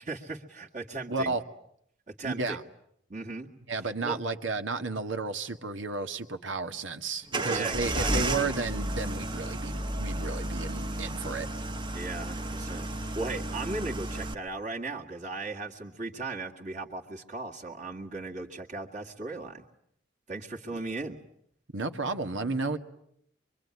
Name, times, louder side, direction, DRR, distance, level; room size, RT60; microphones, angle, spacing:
voice 1, 0.0-1.4 2.1-2.6 3.1-3.5 4.0-4.2 7.5-8.1 11.9-19.7 20.3-21.2, right 3 dB, 40° right, -1 dB, 2.1 m, -37 dB
voice 2, 1.1-1.4 2.2-2.6 3.7-11.5 21.7-22.8, right 3 dB, 85° right, 8 dB, 2.0 m, -32 dB
sound 1, 7.3-14.3, right 2 dB, 25° right, 1.2 m, -32 dB
24.5 x 24.5 x 9.7 m, 0.70 s
head